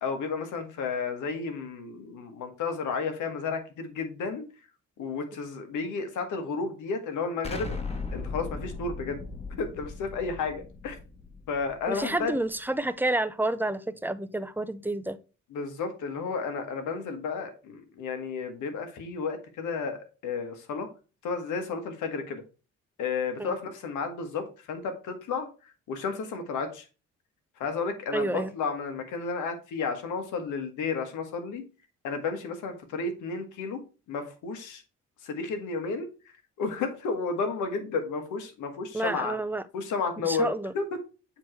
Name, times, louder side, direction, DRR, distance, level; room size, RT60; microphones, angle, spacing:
voice 1, 0.0-4.5 5.0-7.7 8.1-9.2 9.6-11.0 11.5-12.3 15.5-20.9 21.2-22.4 23.0-25.5 25.9-26.9 27.6-31.6 32.0-33.8 34.1-34.8 35.2-36.1 36.6-39.4 39.7-41.0, left 4 dB, 85° left, 1.4 m, -32 dB
Explosion, 7.4-12.3, left 4 dB, 20° left, 1.2 m, -38 dB
voice 2, 11.9-15.2 23.4-23.5 28.1-28.5 38.9-39.6 40.2-40.7, right 2 dB, 5° right, 0.4 m, -29 dB
7.4 x 3.0 x 4.5 m
cardioid pair, 90°, 30 cm